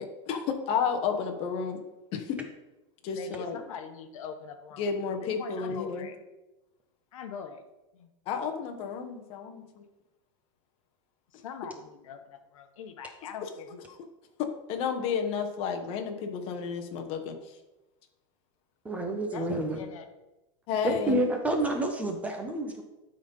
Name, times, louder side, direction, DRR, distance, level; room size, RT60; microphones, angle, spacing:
voice 1, 0.0-1.8 2.1-2.4 3.0-3.6 4.8-6.1 8.3-9.6 14.7-17.4 20.7-21.2, left 6 dB, 35° left, 4 dB, 1.1 m, -31 dB
voice 2, 3.0-6.2 7.1-7.7 7.9-8.1 11.3-13.8 19.3-20.1, left 7 dB, 80° left, 7 dB, 1.0 m, -43 dB
voice 3, 18.8-19.8 20.8-22.8, right 1 dB, 10° right, 3 dB, 0.7 m, -29 dB
12.0 x 4.0 x 5.4 m, 1.0 s
supercardioid pair, 165°, 17 cm